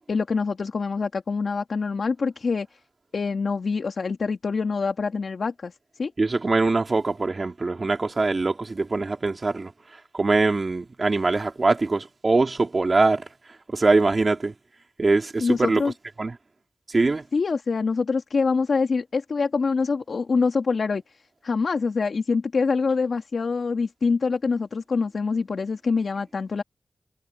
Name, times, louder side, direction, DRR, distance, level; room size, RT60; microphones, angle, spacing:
voice 1, 0.1-2.7 3.1-5.7 6.0-6.1 15.4-15.9 17.3-26.6, left 4 dB, 75° left, 2.8 m, -25 dB
voice 2, 6.2-9.7 10.1-13.3 13.7-14.5 15.0-15.8 16.2-16.4 16.9-17.2, right 3 dB, 50° right, 3.9 m, -22 dB
cardioid pair, 45°, 0 cm